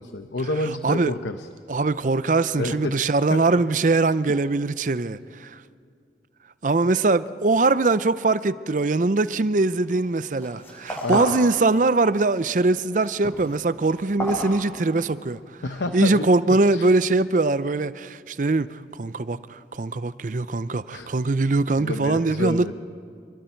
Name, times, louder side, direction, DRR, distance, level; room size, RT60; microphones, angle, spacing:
voice 1, 0.0-1.5 2.6-3.0 3.3-3.6 11.0-11.3 15.6-16.3 16.7-16.9 20.9-21.1 21.8-22.7, left 2 dB, 85° left, 0.8 m, -29 dB
voice 2, 1.7-5.6 6.6-15.4 15.9-22.7, right 3 dB, 45° right, 0.5 m, -22 dB
sound 1, 9.7-10.1 10.3-11.5 11.8-12.4 12.8-15.2, right 1 dB, 15° left, 7.5 m, -32 dB
27.5 x 22.0 x 4.5 m
head